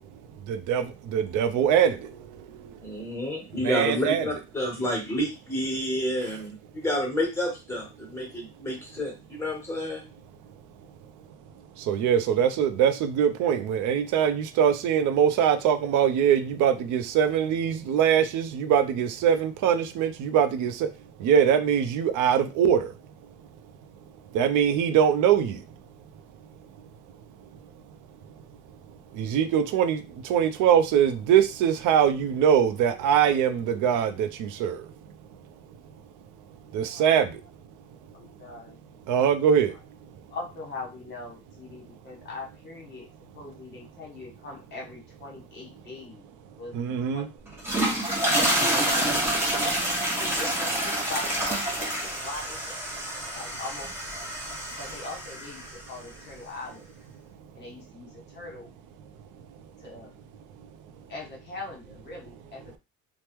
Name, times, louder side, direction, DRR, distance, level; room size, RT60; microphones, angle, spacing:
voice 1, 0.4-2.8 3.6-4.3 11.8-20.9 21.2-22.9 24.3-25.6 29.1-34.9 36.7-37.4 39.1-39.8 46.7-47.3 53.1-53.2, right 8 dB, 80° right, 9 dB, 0.5 m, -23 dB
voice 2, 2.8-6.5 6.7-10.0, equal, 10° left, 0 dB, 1.1 m, -29 dB
voice 3, 36.6-37.2 38.1-38.8 40.3-43.1 43.3-46.3 46.6-47.3 47.8-49.3 50.2-52.9 53.3-53.9 54.8-56.9 57.5-58.7 59.8-60.1 61.1-62.8, left 3 dB, 35° left, -2 dB, 1.1 m, -41 dB
sound 1, 47.5-55.8, right 1 dB, 10° right, 0.8 m, -27 dB
3.4 x 2.1 x 2.9 m, 0.27 s
cardioid pair, 170°, 30 cm